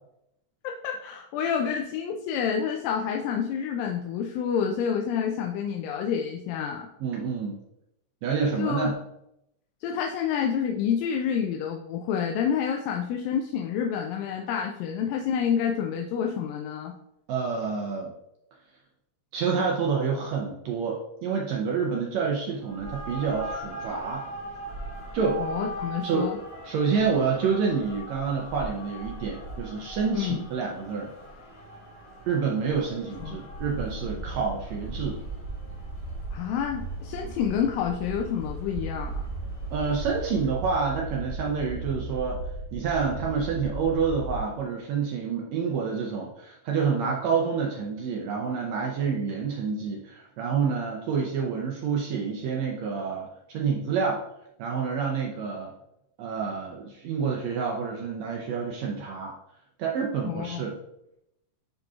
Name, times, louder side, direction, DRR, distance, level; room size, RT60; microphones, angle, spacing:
voice 1, 0.6-6.9 8.6-8.9 9.8-16.9 25.4-26.4 30.1-30.4 33.2-33.4 36.3-39.2 60.3-60.6, left 7 dB, 90° left, 2 dB, 2.3 m, -28 dB
voice 2, 7.0-7.6 8.2-9.0 17.3-18.1 19.3-24.3 25.1-25.4 26.0-26.3 26.6-31.1 32.3-35.2 39.7-42.4 42.7-54.2 54.6-55.7 56.2-59.3 59.8-60.7, right 5 dB, 80° right, -1 dB, 1.5 m, -28 dB
sound 1, 22.6-40.5, right 2 dB, 40° left, 2.0 m, -41 dB
sound 2, 33.5-44.4, right 2 dB, 70° left, 2.9 m, -36 dB
10.5 x 3.8 x 2.4 m, 0.82 s
omnidirectional pair, 3.9 m